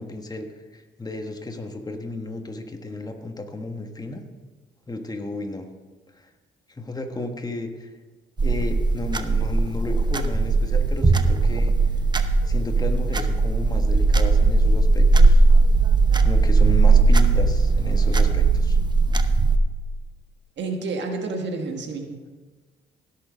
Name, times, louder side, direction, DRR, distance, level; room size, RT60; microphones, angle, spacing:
voice 1, 0.0-4.2 4.9-5.7 6.1-6.3 6.8-7.9 8.4-11.7 12.5-15.5 16.2-18.8, left 2 dB, 20° left, 5 dB, 1.3 m, -33 dB
sound 1, 8.4-19.6, right 3 dB, 20° right, 0.8 m, -18 dB
voice 2, 20.6-22.2, right 3 dB, 65° right, 4 dB, 1.4 m, -29 dB
16.5 x 6.6 x 5.1 m, 1.3 s
cardioid pair, 90°, 20 cm